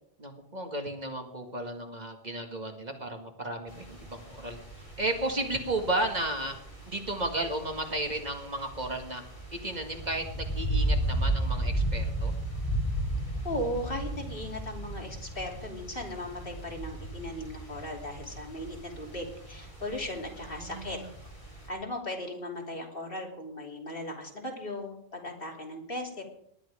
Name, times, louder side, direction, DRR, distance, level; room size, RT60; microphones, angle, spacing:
voice 1, 0.2-4.6 5.0-6.6 6.9-9.2 9.6-12.3 20.4-21.1, right 2 dB, 45° right, 3 dB, 2.0 m, -33 dB
sound 1, 3.7-21.7, right 1 dB, 30° left, 5.1 m, -35 dB
voice 2, 13.4-21.0 21.7-26.2, left 1 dB, 60° left, 0 dB, 3.2 m, -37 dB
19.0 x 11.0 x 5.0 m, 0.73 s
omnidirectional pair, 1.1 m